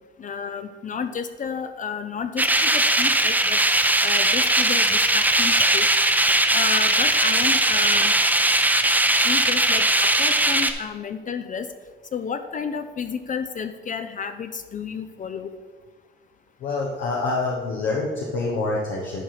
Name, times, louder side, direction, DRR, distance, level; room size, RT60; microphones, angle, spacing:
voice 1, 0.2-3.6 4.0-5.9 6.5-8.1 9.2-11.7 12.1-15.5, left 6 dB, 40° left, 9 dB, 0.5 m, -31 dB
sound 1, 2.4-10.7, right 1 dB, 10° right, 0.6 m, -19 dB
voice 2, 16.6-19.2, left 3 dB, 80° left, -2 dB, 1.1 m, -26 dB
10.5 x 4.2 x 4.8 m, 1.4 s
cardioid pair, 90°, 20 cm